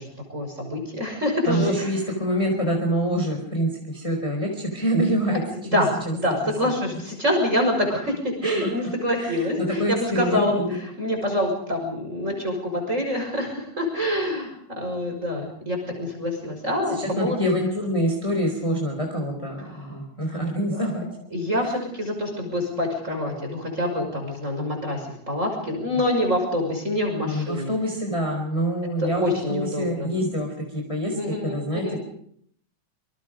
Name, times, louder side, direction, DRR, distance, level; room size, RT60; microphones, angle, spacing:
voice 1, 0.0-1.9 5.7-8.1 8.4-17.5 19.7-19.8 20.7-20.8 21.3-27.7 29.0-30.1 31.2-32.0, left 1 dB, 20° right, 2 dB, 6.1 m, -26 dB
voice 2, 1.4-5.4 5.7-5.8 6.1-6.2 6.4-6.7 8.4-8.7 9.2-10.7 16.9-21.0 21.5-21.7 27.2-31.2 31.4-32.0, equal, 10° left, 2 dB, 4.2 m, -26 dB
27.0 x 26.0 x 5.2 m, 0.68 s
omnidirectional pair, 3.7 m